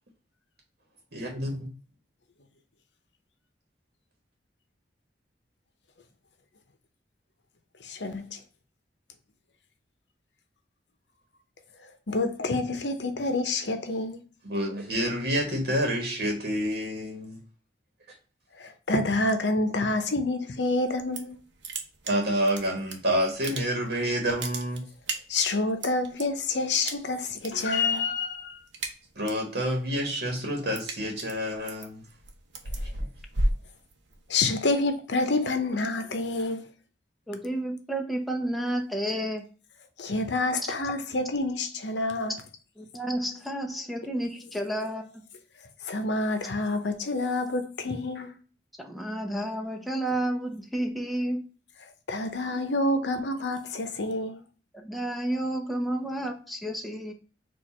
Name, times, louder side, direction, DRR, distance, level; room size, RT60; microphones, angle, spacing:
voice 1, 1.1-1.6 14.4-17.4 22.1-24.8 29.1-32.0 33.0-33.1, equal, 60° right, 1.1 m, -28 dB
voice 2, 7.8-8.2 12.1-14.2 18.6-21.3 25.3-28.6 34.3-36.7 40.0-42.3 45.9-48.3 52.1-54.4, left 2 dB, 70° left, 0.8 m, -28 dB
sound 1, 20.9-21.4 21.6-23.0 23.3-23.9 24.2-26.2 26.9-27.5 27.8-28.1 28.4-29.5 29.9-34.4, right 1 dB, 85° right, 0.8 m, -33 dB
voice 3, 37.3-39.4 42.8-45.0 48.8-51.4 54.7-57.1, right 1 dB, ahead, 0.7 m, -31 dB
4.6 x 2.5 x 4.2 m
head